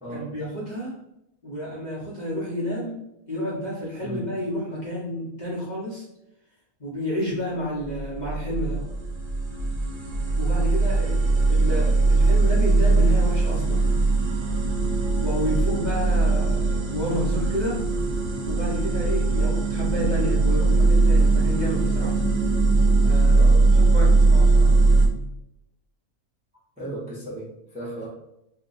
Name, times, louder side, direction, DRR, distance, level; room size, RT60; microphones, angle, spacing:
voice 1, 0.1-1.0 1.4-3.0 3.3-6.0 6.8-8.8 10.4-13.9 15.2-17.8 18.5-22.2 23.0-23.5 23.9-24.7, equal, 35° left, -7 dB, 0.9 m, -30 dB
sound 1, 7.9-25.1, right 3 dB, 65° right, 0.5 m, -20 dB
voice 2, 23.3-23.6 26.8-28.1, right 1 dB, 5° right, -6 dB, 0.6 m, -35 dB
2.8 x 2.3 x 3.9 m, 0.84 s
omnidirectional pair, 1.6 m